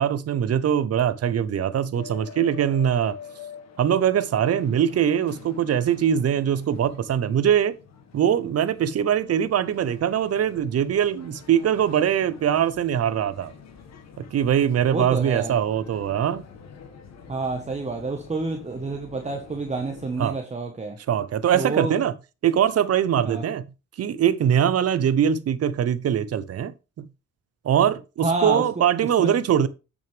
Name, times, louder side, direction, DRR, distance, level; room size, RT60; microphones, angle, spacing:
voice 1, 0.0-3.2 3.8-7.7 8.1-13.5 14.3-16.4 20.2-20.4 21.1-22.1 22.4-23.6 24.0-26.7 27.0-27.1 27.6-29.7, right 9 dB, 55° right, 0.8 m, -22 dB
sound 1, 1.9-20.2, left 7 dB, 60° left, 1.8 m, -46 dB
voice 2, 14.9-15.6 17.3-21.0 21.5-21.9 23.2-23.4 28.2-28.9 29.2-29.4, right 3 dB, 20° right, 1.3 m, -28 dB
8.8 x 6.3 x 3.4 m
cardioid pair, 90°, 30 cm